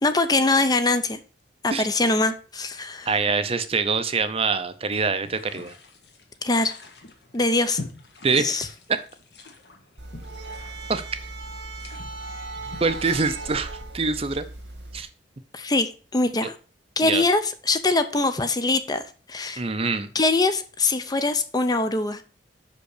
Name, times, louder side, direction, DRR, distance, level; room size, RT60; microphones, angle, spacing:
voice 1, 0.0-1.2 1.6-3.1 6.4-6.7 7.3-7.8 8.4-8.7 15.5-16.5 17.0-19.0 19.3-19.6 20.1-22.2, left 3 dB, 25° left, 10 dB, 0.6 m, -23 dB
voice 2, 3.1-5.7 8.2-8.6 10.9-11.0 12.8-14.5 14.9-15.1 17.0-17.2 19.6-20.1, right 4 dB, 35° right, 11 dB, 0.6 m, -24 dB
sound 1, 5.2-14.8, left 2 dB, 70° left, 1.5 m, -45 dB
sound 2, 10.0-15.0, right 2 dB, 90° right, 1.8 m, -37 dB
5.7 x 5.2 x 6.5 m, 0.38 s
head